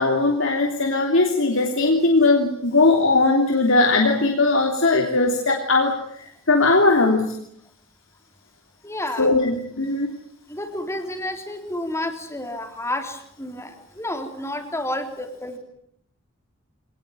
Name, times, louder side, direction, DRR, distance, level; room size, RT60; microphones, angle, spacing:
voice 1, 0.0-5.9 6.2-7.3 9.2-10.1, left 3 dB, 65° left, 1 dB, 3.2 m, -19 dB
voice 2, 8.8-9.3 10.5-15.6, left 1 dB, 15° left, 5 dB, 3.7 m, -30 dB
25.5 x 19.0 x 9.1 m, 0.70 s
head